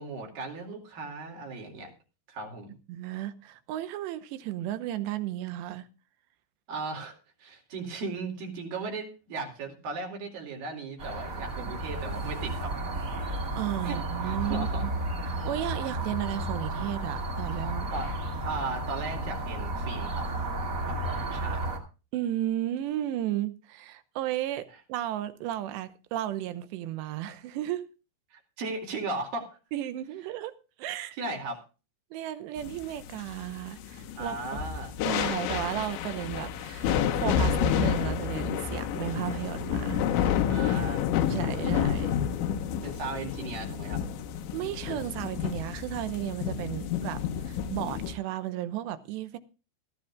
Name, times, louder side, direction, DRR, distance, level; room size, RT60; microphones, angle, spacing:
voice 1, 0.0-1.9 2.3-2.7 6.7-12.8 13.8-14.9 17.9-18.1 18.4-20.3 20.9-21.7 28.3-29.6 31.2-31.6 34.1-34.9 40.5-41.0 42.8-44.0, right 3 dB, 55° right, 3.8 m, -37 dB
voice 2, 2.9-5.9 11.6-11.7 13.3-14.9 15.3-17.9 22.1-27.9 29.7-30.5 30.8-31.2 32.1-34.7 35.0-40.4 41.3-42.1 44.5-49.4, right 13 dB, 80° right, 2.9 m, -34 dB
sound 1, 11.0-21.8, right 1 dB, 30° right, 2.1 m, -33 dB
sound 2, 32.6-48.1, left 8 dB, 80° left, 3.3 m, -30 dB
18.5 x 14.5 x 2.4 m
omnidirectional pair, 5.3 m